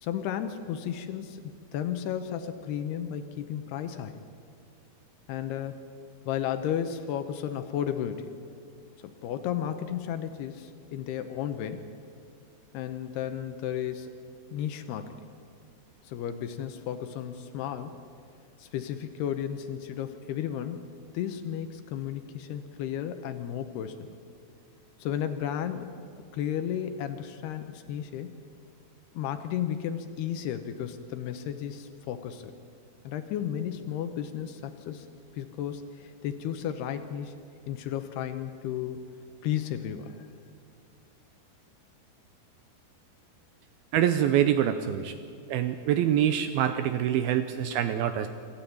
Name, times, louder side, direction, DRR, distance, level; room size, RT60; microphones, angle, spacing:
voice 1, 0.0-1.4 1.7-4.2 5.3-5.8 6.3-8.3 9.0-11.9 12.7-14.1 14.5-15.2 16.0-18.0 18.6-24.1 25.0-26.0 26.3-28.3 29.1-32.5 33.0-35.1 35.3-37.3 37.7-39.0 39.4-40.3, left 9 dB, 80° left, 8 dB, 2.9 m, -33 dB
voice 2, 43.9-45.1 45.5-48.3, right 10 dB, 80° right, 9 dB, 2.4 m, -25 dB
26.0 x 13.0 x 8.6 m, 2.4 s
omnidirectional pair, 4.8 m